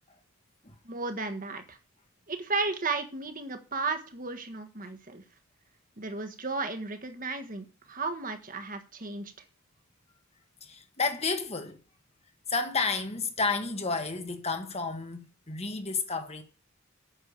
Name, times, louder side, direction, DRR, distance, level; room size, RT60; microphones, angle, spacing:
voice 1, 0.8-1.8 2.3-5.2 6.0-9.3, right 3 dB, 40° right, 1.5 m, -34 dB
voice 2, 10.6-11.8 12.5-16.4, left 4 dB, 30° left, 1.4 m, -31 dB
9.0 x 6.7 x 6.8 m
head